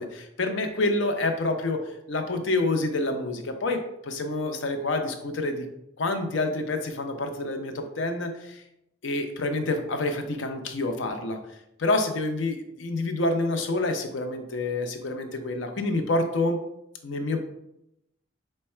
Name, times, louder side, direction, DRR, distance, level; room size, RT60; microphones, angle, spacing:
voice 1, 0.0-1.8 2.1-5.7 6.0-8.6 9.0-11.4 11.8-16.6 17.0-17.4, left 2 dB, 70° left, 6 dB, 0.6 m, -27 dB
4.6 x 2.2 x 4.3 m, 0.82 s
head